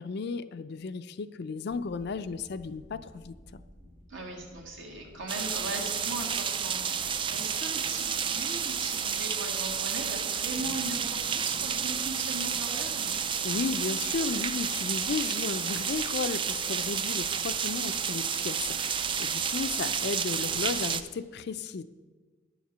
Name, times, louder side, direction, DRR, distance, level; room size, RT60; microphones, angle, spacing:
voice 1, 0.0-3.6 13.4-21.8, left 4 dB, 55° left, 12 dB, 0.4 m, -34 dB
sound 1, 1.7-21.0, equal, 40° right, 2.0 m, -53 dB
voice 2, 4.1-13.2, right 2 dB, 70° right, 1 dB, 2.1 m, -39 dB
sound 2, 5.3-21.0, right 7 dB, 25° right, 0.3 m, -31 dB
9.8 x 7.2 x 6.1 m, 1.4 s
head